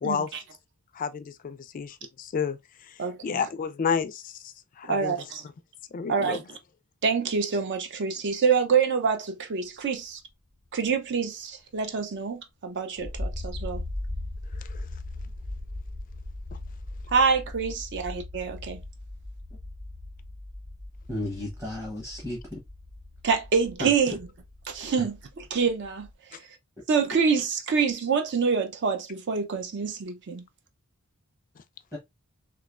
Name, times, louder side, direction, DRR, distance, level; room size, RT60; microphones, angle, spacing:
voice 1, 0.0-0.4 3.0-3.5 4.8-5.4 6.1-6.4 7.0-10.2 10.7-13.8 17.1-18.8 23.2-24.2 24.7-26.4 26.9-30.4, right 5 dB, 55° right, 0.5 m, -26 dB
voice 2, 0.9-2.6 3.2-5.2 5.9-6.4 14.6-14.8, left 6 dB, 35° left, 0.3 m, -30 dB
sound 1, 13.0-26.1, left 2 dB, 85° right, 2.3 m, -39 dB
voice 3, 21.1-22.6 23.8-23.9 25.0-25.1 31.9-32.0, left 1 dB, 15° right, 0.8 m, -33 dB
3.1 x 2.9 x 2.3 m
head